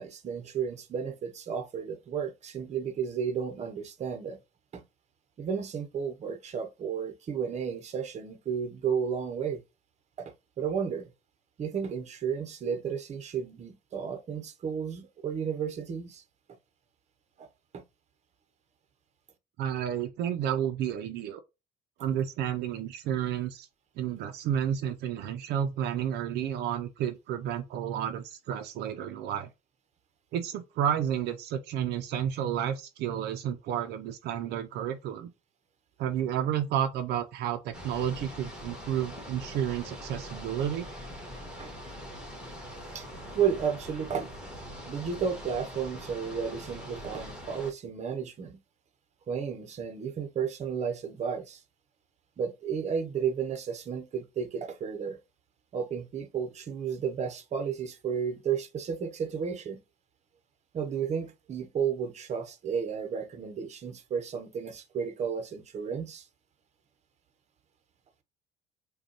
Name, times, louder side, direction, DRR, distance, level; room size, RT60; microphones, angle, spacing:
voice 1, 0.0-4.4 4.7-4.8 5.4-9.6 10.2-11.1 11.6-16.2 17.4-17.5 17.7-17.8 41.6-41.7 42.9-43.1 43.3-44.3 44.9-48.6 49.3-51.6 52.4-55.2 55.7-59.8 60.7-66.3, right 7 dB, 40° right, 0.8 m, -33 dB
voice 2, 19.6-21.4 22.0-23.7 24.0-29.5 30.3-35.3 36.0-40.9, right 9 dB, 75° right, 0.5 m, -31 dB
sound 1, 37.7-47.7, equal, 5° right, 1.5 m, -43 dB
5.1 x 2.3 x 2.9 m
cardioid pair, 110°, 17 cm